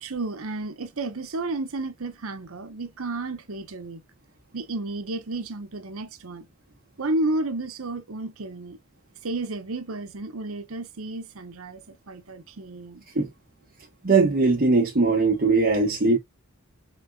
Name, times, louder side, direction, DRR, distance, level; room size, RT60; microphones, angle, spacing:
voice 1, 0.0-4.0 4.5-6.5 7.0-8.8 9.2-13.0, right 2 dB, 85° right, 0.9 m, -32 dB
voice 2, 14.0-16.2, right 3 dB, 45° right, 1.2 m, -20 dB
5.3 x 3.7 x 2.3 m
head